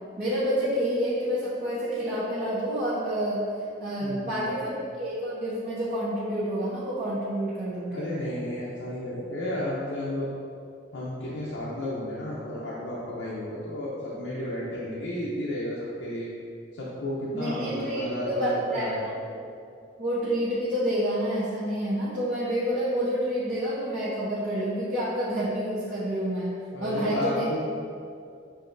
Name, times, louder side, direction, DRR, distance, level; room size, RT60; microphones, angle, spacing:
voice 1, 0.2-3.5 3.8-8.1 17.3-19.1 20.0-26.5 26.8-27.4, equal, 50° right, -11 dB, 0.9 m, -28 dB
voice 2, 4.0-4.5 7.9-10.3 10.9-16.3 16.8-19.0 26.7-27.7, left 1 dB, 85° left, -7 dB, 0.6 m, -32 dB
7.3 x 2.7 x 2.6 m, 2.4 s
head